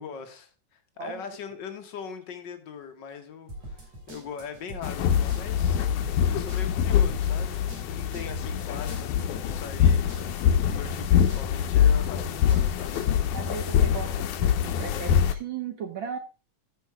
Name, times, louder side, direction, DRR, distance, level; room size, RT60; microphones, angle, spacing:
voice 1, 0.0-5.9 6.3-13.0, left 6 dB, 70° left, 1.0 m, -41 dB
sound 1, 3.5-13.1, right 1 dB, 60° right, 4.1 m, -43 dB
sound 2, 4.8-15.3, left 9 dB, 90° left, 2.3 m, -24 dB
voice 2, 13.3-16.2, right 7 dB, 75° right, 1.1 m, -36 dB
14.0 x 4.7 x 4.6 m
omnidirectional pair, 3.5 m